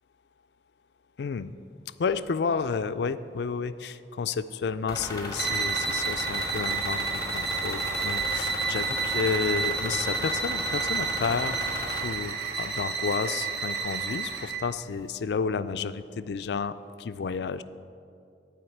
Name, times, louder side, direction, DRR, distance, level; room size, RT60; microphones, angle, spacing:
voice 1, 1.2-1.5 2.0-11.6 12.0-17.6, left 5 dB, 70° left, 13 dB, 0.4 m, -31 dB
sound 1, 4.9-12.0, left 2 dB, 25° left, 1.6 m, -36 dB
sound 2, 5.3-14.7, right 5 dB, 65° right, 1.1 m, -30 dB
11.0 x 5.0 x 8.3 m, 2.5 s
head